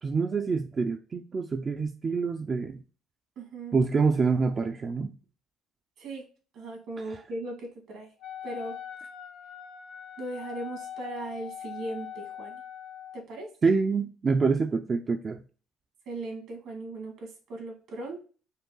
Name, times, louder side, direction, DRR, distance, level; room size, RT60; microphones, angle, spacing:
voice 1, 0.0-2.8 3.7-5.1 7.0-7.2 13.6-15.4, right 4 dB, 35° right, 5 dB, 0.4 m, -26 dB
voice 2, 3.4-3.7 6.0-6.2 6.5-8.1 8.4-8.8 10.2-12.6 13.1-13.7 16.1-18.2, right 2 dB, 70° right, 1 dB, 2.0 m, -38 dB
Wind instrument woodwind instrument, 8.2-13.2, left 9 dB, 65° left, 0.7 m, -42 dB
5.3 x 2.2 x 3.8 m, 0.35 s
supercardioid pair, 80°, 0 cm